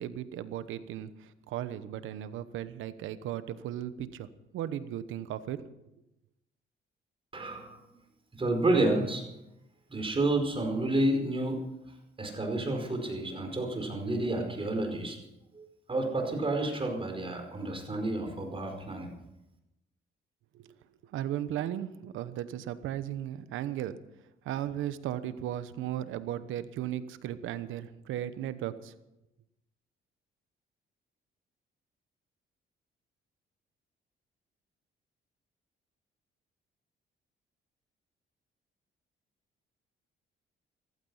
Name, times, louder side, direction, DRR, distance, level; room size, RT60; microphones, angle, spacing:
voice 1, 0.0-4.3 4.5-5.6 20.5-20.7 21.1-24.0 24.4-28.9, right 11 dB, 90° right, 13 dB, 1.0 m, -36 dB
voice 2, 7.3-7.8 8.4-9.2 9.9-11.6 12.2-15.2 15.5-19.1, right 2 dB, 25° right, 3 dB, 5.0 m, -30 dB
15.0 x 15.0 x 5.6 m, 0.88 s
cardioid pair, 90°, 20 cm